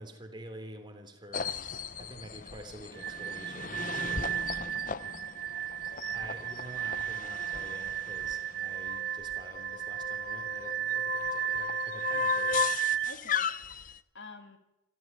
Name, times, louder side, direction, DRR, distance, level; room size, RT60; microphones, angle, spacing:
voice 1, 0.0-1.6 2.0-4.4 6.1-12.7, right 1 dB, 25° right, 5 dB, 3.4 m, -48 dB
sound 1, 1.3-14.0, left 6 dB, 45° left, 0.8 m, -36 dB
sound 2, 3.0-13.1, right 11 dB, 55° right, 1.2 m, -34 dB
voice 2, 4.6-5.3 5.9-6.3 13.0-13.5 14.1-14.6, left 3 dB, 70° left, 7 dB, 2.7 m, -50 dB
26.5 x 14.0 x 9.3 m, 0.89 s
head